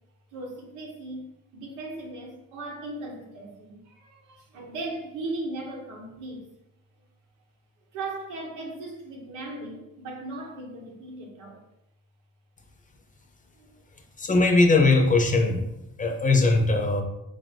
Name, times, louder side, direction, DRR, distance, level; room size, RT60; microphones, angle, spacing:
voice 1, 0.3-1.2 1.5-6.5 7.9-11.6 13.6-13.8, right 2 dB, 90° right, 0 dB, 1.0 m, -37 dB
voice 2, 14.2-15.6 16.0-17.0, left 3 dB, 25° left, 2 dB, 0.6 m, -20 dB
3.8 x 2.6 x 3.3 m, 0.88 s
cardioid pair, 90°, 30 cm